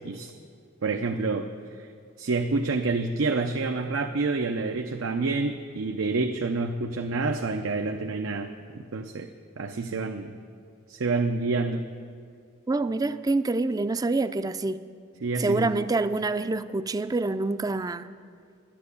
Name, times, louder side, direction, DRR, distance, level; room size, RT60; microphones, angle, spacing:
voice 1, 0.8-1.5 2.2-9.3 9.6-10.3 10.9-11.9 15.2-15.7, right 3 dB, 90° right, 4 dB, 0.6 m, -28 dB
voice 2, 12.7-14.8 15.4-18.1, right 3 dB, 20° right, 12 dB, 0.3 m, -26 dB
11.0 x 10.5 x 8.4 m, 2.3 s
head